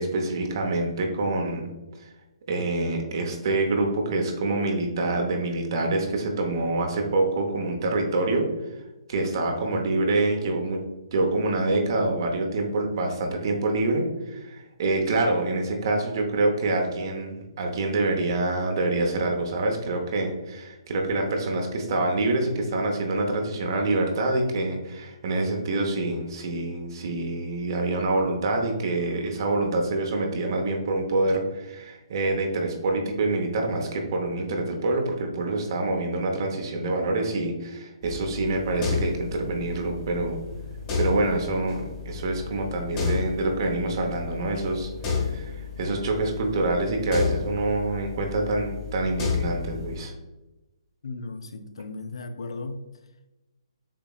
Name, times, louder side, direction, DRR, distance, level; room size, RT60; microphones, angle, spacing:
voice 1, 0.0-1.7 2.0-2.1 2.5-8.5 9.1-10.8 11.1-40.4 41.0-44.9 45.2-50.1, right 2 dB, 50° right, 2 dB, 0.8 m, -26 dB
sound 1, 38.0-50.0, left 5 dB, 30° left, 1.1 m, -32 dB
voice 2, 51.0-52.9, left 3 dB, 70° left, 8 dB, 0.5 m, -36 dB
7.0 x 2.9 x 2.3 m, 1.1 s
hypercardioid pair, 140°, 3 cm